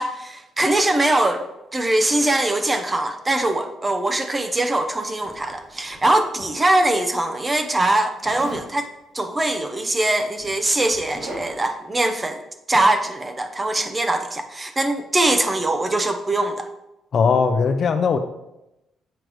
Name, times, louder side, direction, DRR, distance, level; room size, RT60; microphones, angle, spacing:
voice 1, 0.0-1.4 1.7-8.9 9.1-12.4 12.7-16.7, right 1 dB, 20° right, 7 dB, 0.7 m, -22 dB
Zipper (clothing), 5.2-6.9 8.2-8.7 9.8-9.9 10.2-11.7, right 1 dB, 70° right, 2.2 m, -39 dB
voice 2, 17.1-18.2, left 5 dB, 55° left, 8 dB, 0.6 m, -19 dB
7.8 x 5.1 x 3.1 m, 0.92 s
cardioid pair, 90°, 0 cm